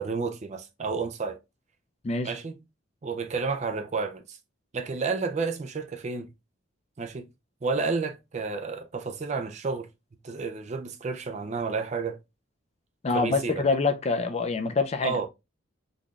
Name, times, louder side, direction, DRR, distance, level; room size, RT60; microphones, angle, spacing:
voice 1, 0.0-1.4 2.2-2.6 3.0-4.4 4.7-6.3 7.0-7.3 7.6-9.9 10.2-12.2 13.1-13.6 15.0-15.3, right 4 dB, 35° right, 0.4 m, -31 dB
voice 2, 13.0-15.2, left 4 dB, 30° left, 0.4 m, -26 dB
4.0 x 3.2 x 2.3 m
head